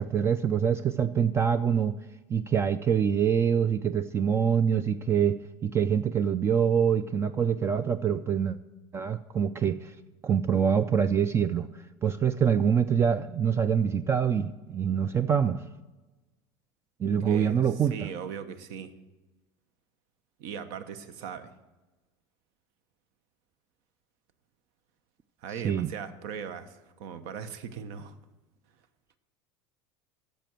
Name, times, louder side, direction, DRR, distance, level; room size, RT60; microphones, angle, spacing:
voice 1, 0.0-2.0 2.3-8.6 8.9-9.9 10.2-11.7 12.0-15.6 17.0-18.1 25.6-25.9, right 7 dB, 25° right, 13 dB, 0.3 m, -25 dB
voice 2, 17.2-18.9 20.4-21.5 25.4-28.1, right 7 dB, 70° right, 11 dB, 1.0 m, -39 dB
10.0 x 6.8 x 7.5 m, 1.2 s
supercardioid pair, 125°, 11 cm